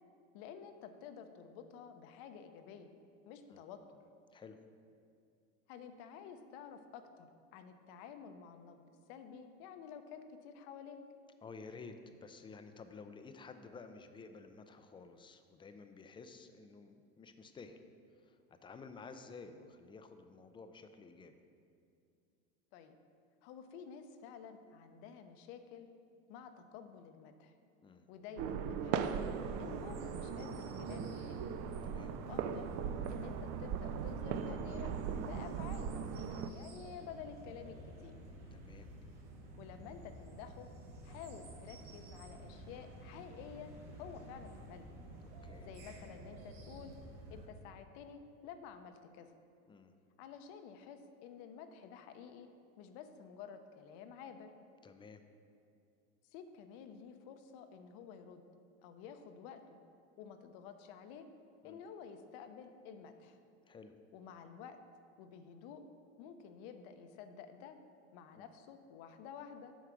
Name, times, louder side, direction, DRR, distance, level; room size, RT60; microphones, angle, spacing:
voice 1, 0.3-2.9 3.3-4.0 5.7-7.3 7.5-11.0 22.7-23.0 23.4-25.9 26.3-27.5 28.1-29.1 29.6-31.4 32.1-32.7 33.1-34.9 35.2-38.2 39.6-40.7 41.0-44.9 45.6-46.9 47.3-49.3 50.2-52.5 52.8-54.5 56.3-58.4 58.8-59.8 60.2-61.3 61.6-63.4 64.1-64.8 65.2-65.8 66.2-67.8 68.1-69.7, left 7 dB, 65° left, 8 dB, 0.8 m, -51 dB
voice 2, 11.4-17.8 18.2-21.4 27.8-28.0 31.8-32.1 38.5-38.9 45.4-45.7 49.7-49.9 54.8-55.2 61.6-61.8 63.7-63.9 68.3-68.4, left 4 dB, 15° left, 8 dB, 0.4 m, -52 dB
sound 1, 28.4-36.5, right 7 dB, 50° right, 0.5 m, -39 dB
sound 2, 29.0-47.5, right 1 dB, 65° right, 1.6 m, -52 dB
8.1 x 4.8 x 6.0 m, 2.4 s
supercardioid pair, 115°, 34 cm